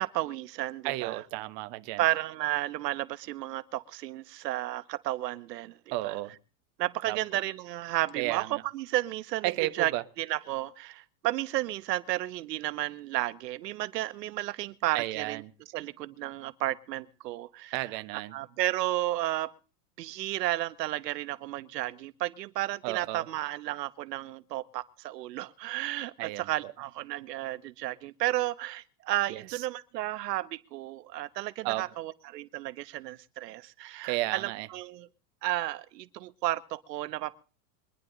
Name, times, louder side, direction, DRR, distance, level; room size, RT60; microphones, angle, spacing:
voice 1, 0.0-1.2 2.0-5.8 6.0-6.1 6.8-9.4 9.8-9.9 10.3-15.4 15.7-17.7 18.3-19.5 20.0-35.1 35.4-37.4, right 16 dB, 80° right, 1.1 m, -32 dB
voice 2, 0.8-2.0 5.9-6.4 7.0-7.2 8.2-8.6 9.4-10.0 14.9-15.5 17.7-18.3 22.8-23.3 26.2-26.7 29.3-29.7 31.6-31.9 34.0-34.7, right 18 dB, 40° right, 1.2 m, -33 dB
23.0 x 10.5 x 3.9 m
supercardioid pair, 155°, 48 cm